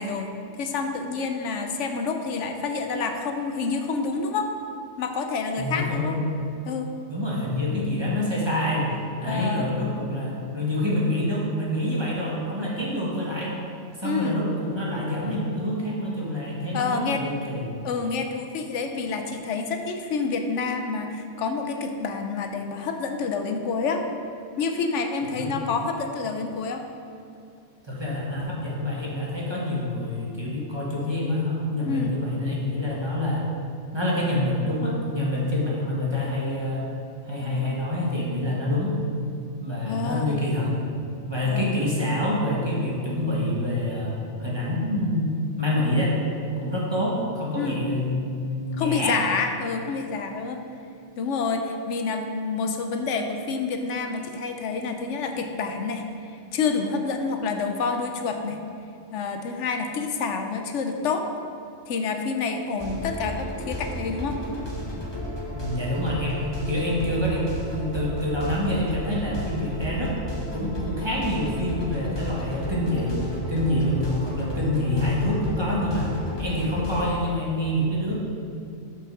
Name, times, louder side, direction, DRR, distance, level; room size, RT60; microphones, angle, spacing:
voice 1, 0.0-4.5 5.0-6.1 6.7-6.9 9.3-9.7 14.0-14.4 16.7-17.2 17.8-24.0 24.6-26.9 31.8-32.1 39.8-40.4 41.4-41.7 47.5-47.8 48.8-50.6 51.2-58.6 59.1-61.3 61.9-64.4, left 4 dB, 80° left, 5 dB, 0.9 m, -28 dB
voice 2, 5.6-6.2 7.1-13.6 14.0-17.6 25.2-25.5 27.8-33.4 33.9-36.9 37.2-39.0 39.6-40.7 41.3-44.1 44.4-46.1 46.6-49.2 65.5-70.1 70.5-76.1 76.4-78.1, left 1 dB, 25° right, -5 dB, 1.2 m, -26 dB
sound 1, 62.8-77.1, left 1 dB, 25° left, 1.0 m, -33 dB
6.1 x 5.1 x 6.0 m, 2.5 s
omnidirectional pair, 1.2 m